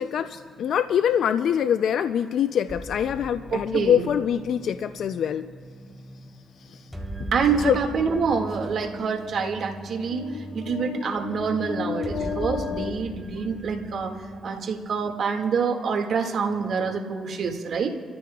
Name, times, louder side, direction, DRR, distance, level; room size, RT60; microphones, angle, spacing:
voice 1, 0.0-5.5 6.6-6.9 7.5-7.8 10.1-13.1, left 9 dB, 75° left, 11 dB, 0.4 m, -26 dB
sound 1, 2.7-14.8, right 1 dB, ahead, 4.1 m, -39 dB
voice 2, 3.5-4.1 7.3-14.1 14.4-17.9, right 5 dB, 70° right, 3 dB, 1.9 m, -26 dB
30.0 x 14.0 x 2.3 m, 2.3 s
supercardioid pair, 60°, 0 cm